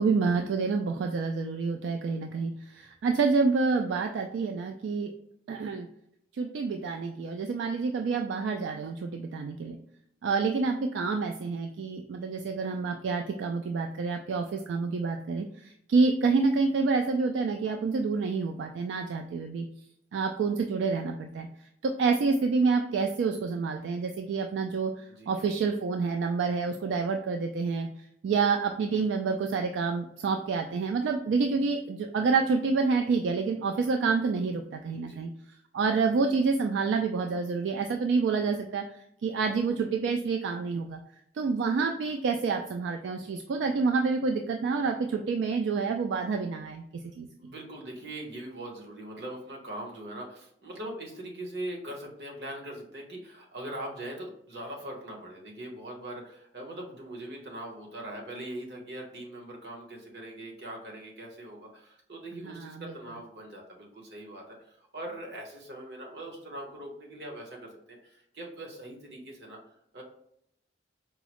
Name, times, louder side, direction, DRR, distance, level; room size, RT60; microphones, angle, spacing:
voice 1, 0.0-5.1 5.5-5.9 6.3-9.8 10.2-19.7 20.1-21.5 21.8-27.9 28.2-35.3 35.7-41.0 41.3-47.3 62.4-62.8, right 4 dB, 85° right, 4 dB, 0.3 m, -28 dB
voice 2, 34.9-35.3 47.4-70.0, right 1 dB, 65° right, -1 dB, 1.0 m, -41 dB
4.6 x 2.0 x 2.9 m, 0.74 s
head